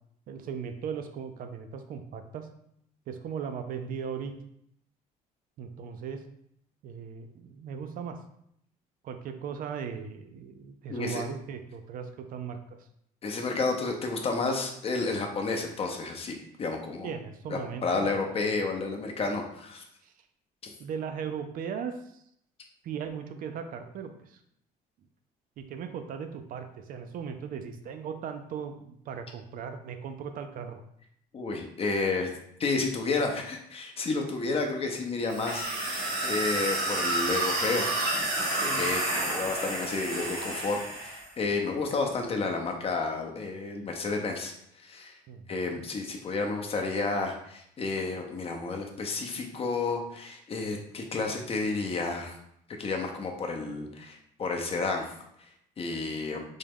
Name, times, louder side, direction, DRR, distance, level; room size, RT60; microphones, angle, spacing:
voice 1, 0.3-2.5 3.1-4.3 5.6-6.2 6.8-8.2 9.0-12.9 17.0-18.5 20.0-20.1 20.8-22.2 22.8-24.4 25.6-30.8 45.3-45.9, right 7 dB, 55° right, 7 dB, 0.4 m, -38 dB
voice 2, 10.9-11.2 13.2-17.1 17.5-19.8 31.3-32.3 32.6-37.9 38.6-45.2 45.5-52.4 52.8-55.1 55.8-56.4, left 3 dB, 35° left, 3 dB, 0.6 m, -31 dB
sound 1, 35.3-41.3, right 2 dB, 90° right, 1.4 m, -30 dB
3.5 x 2.1 x 3.4 m, 0.73 s
cardioid pair, 110°, 17 cm